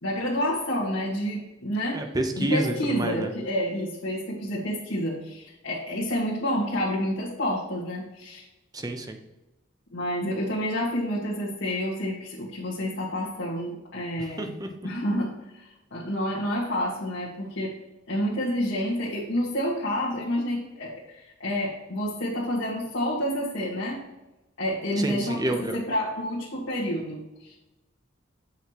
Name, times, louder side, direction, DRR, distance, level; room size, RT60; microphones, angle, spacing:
voice 1, 0.0-2.0 2.4-8.4 9.9-14.5 14.8-17.7 18.1-24.0 24.6-27.6, equal, 80° left, -7 dB, 1.5 m, -29 dB
voice 2, 1.9-3.3 8.7-9.2 14.4-14.7 25.0-25.8, right 1 dB, 20° right, 5 dB, 0.7 m, -28 dB
7.9 x 5.7 x 2.9 m, 1.0 s
head